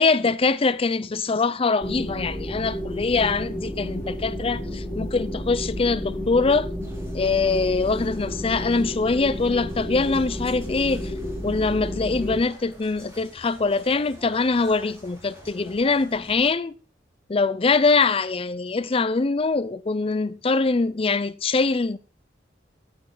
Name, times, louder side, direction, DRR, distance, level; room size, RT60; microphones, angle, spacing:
voice 1, 0.0-6.7 7.1-11.1 11.4-16.7 17.3-22.0, left 4 dB, 30° left, 0.5 m, -23 dB
sound 1, 1.8-12.4, equal, 5° left, 4.1 m, -31 dB
sound 2, 6.8-16.5, equal, 15° right, 3.7 m, -48 dB
9.7 x 8.7 x 3.9 m
head